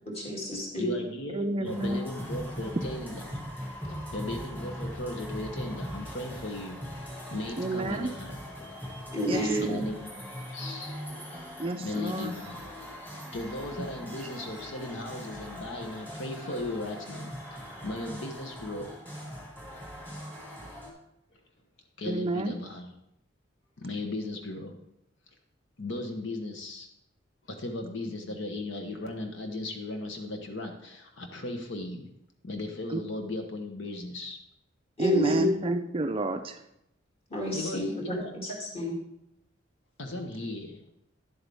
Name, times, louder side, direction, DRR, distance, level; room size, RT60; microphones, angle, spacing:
voice 1, 0.2-1.0 9.1-9.8 35.0-35.5 37.3-39.0, left 1 dB, 30° left, -2 dB, 2.4 m, -29 dB
voice 2, 0.8-3.4 3.8-6.8 7.3-8.5 9.6-10.2 10.5-11.0 11.8-12.6 13.3-18.9 21.3-21.4 22.0-22.9 23.8-24.8 25.8-26.9 27.5-32.1 32.4-34.4 37.5-38.3 40.0-40.8, left 2 dB, 65° left, 4 dB, 1.0 m, -37 dB
voice 3, 1.3-2.1 7.6-8.1 9.3-9.8 11.6-12.3 13.8-13.9 22.1-22.6 28.2-28.3 32.9-33.0 35.0-36.6, right 2 dB, 30° right, 7 dB, 0.4 m, -30 dB
sound 1, 1.6-20.9, equal, 10° left, 2.1 m, -40 dB
10.5 x 8.0 x 3.5 m, 0.80 s
head